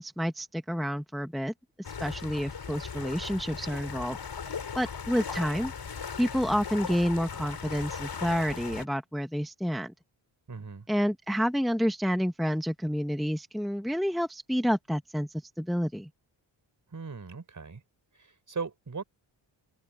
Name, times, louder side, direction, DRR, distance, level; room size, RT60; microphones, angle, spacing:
voice 1, 0.0-1.5 2.0-4.2 4.8-5.7 6.2-9.9 10.9-16.1, equal, ahead, 1.1 m, -29 dB
sound 1, 1.8-8.9, left 6 dB, 55° left, 6.1 m, -38 dB
voice 2, 10.5-10.9 16.9-17.8 18.1-19.0, right 5 dB, 40° right, 4.8 m, -38 dB
open air
wide cardioid pair, 115°, 49 cm